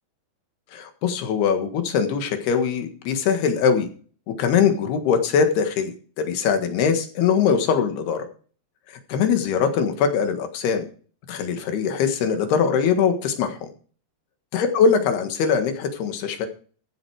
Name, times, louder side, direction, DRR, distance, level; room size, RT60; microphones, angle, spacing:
voice 1, 0.7-3.9 4.4-5.9 6.2-8.3 8.9-10.9 11.3-13.7 14.5-16.5, left 6 dB, 70° left, 7 dB, 3.5 m, -22 dB
15.0 x 7.8 x 4.8 m, 0.41 s
omnidirectional pair, 5.0 m